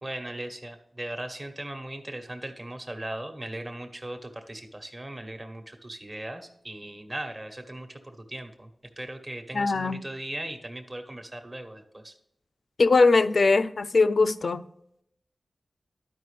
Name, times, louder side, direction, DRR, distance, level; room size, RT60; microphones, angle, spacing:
voice 1, 0.0-8.7 9.0-12.1, right 1 dB, 30° right, 1.1 m, -38 dB
voice 2, 9.5-10.0 12.8-14.6, left 3 dB, 70° left, 0.4 m, -21 dB
12.0 x 5.0 x 3.3 m
wide cardioid pair, 60°, 0 cm